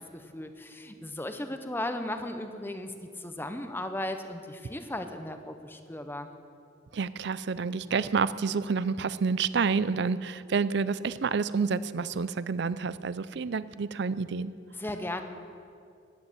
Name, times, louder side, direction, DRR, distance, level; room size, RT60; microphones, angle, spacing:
voice 1, 0.1-6.3 14.8-15.2, left 1 dB, 10° left, 7 dB, 0.9 m, -36 dB
voice 2, 6.9-14.5, right 5 dB, 70° right, 16 dB, 0.5 m, -29 dB
13.0 x 10.5 x 8.0 m, 2.5 s
head